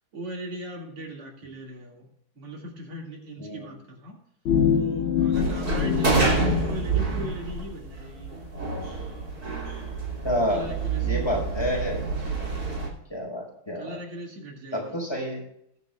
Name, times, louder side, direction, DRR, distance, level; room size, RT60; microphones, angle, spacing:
voice 1, 0.1-2.1 2.3-4.2 4.7-8.3 10.5-11.3 13.7-15.0, right 1 dB, 80° right, 0 dB, 3.4 m, -38 dB
voice 2, 3.4-3.7 10.2-10.7 11.0-12.0 13.1-14.0 14.7-15.4, equal, 10° left, -2 dB, 5.2 m, -29 dB
sound 1, 4.5-7.3, left 8 dB, 70° left, 2.3 m, -25 dB
sound 2, 5.3-12.9, right 3 dB, 40° right, 3.4 m, -28 dB
21.5 x 9.5 x 2.4 m, 0.73 s
omnidirectional pair, 2.4 m